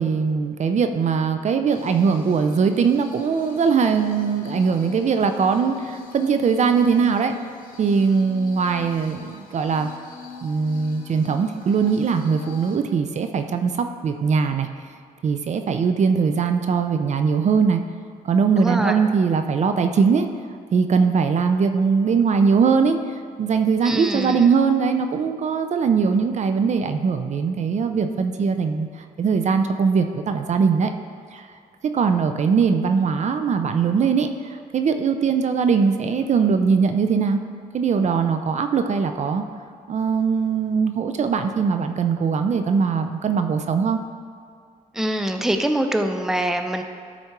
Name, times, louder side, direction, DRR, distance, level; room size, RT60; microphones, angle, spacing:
voice 1, 0.0-7.3 7.8-9.9 10.4-14.7 15.2-17.8 18.2-20.3 20.7-28.9 29.2-30.9 31.3-31.5 31.8-37.4 37.7-39.4 39.9-44.0, right 5 dB, 50° right, 7 dB, 0.6 m, -21 dB
sound 1, 1.7-12.8, left 4 dB, 85° left, 1.2 m, -42 dB
voice 2, 18.6-19.0 23.8-24.4 44.9-46.8, right 1 dB, 5° right, 6 dB, 0.5 m, -24 dB
13.0 x 4.3 x 4.6 m, 2.2 s
cardioid pair, 95°, 15 cm